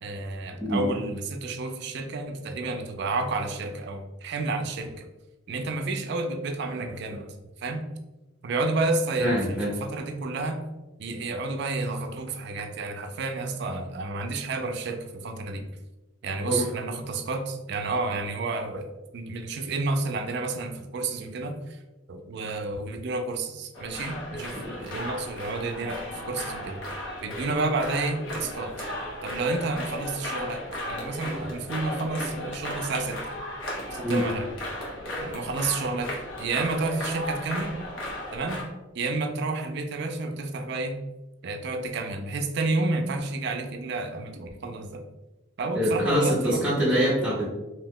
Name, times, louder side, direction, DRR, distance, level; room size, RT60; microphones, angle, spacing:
voice 1, 0.0-5.1 5.5-7.3 7.6-7.8 8.4-10.6 11.0-15.7 16.2-18.9 19.1-21.6 22.1-26.8 27.2-28.8 29.2-30.6 30.9-33.4 33.9-34.5 35.1-37.7 38.3-38.6 38.9-41.0 41.4-45.0 45.6-46.8, right 3 dB, 55° right, 6 dB, 0.4 m, -30 dB
voice 2, 9.2-9.7 16.4-16.7 34.0-34.2 45.7-47.5, equal, 5° right, -8 dB, 0.6 m, -24 dB
sound 1, 23.7-38.6, left 1 dB, 70° left, 0.9 m, -35 dB
2.7 x 2.1 x 3.5 m, 1.1 s
head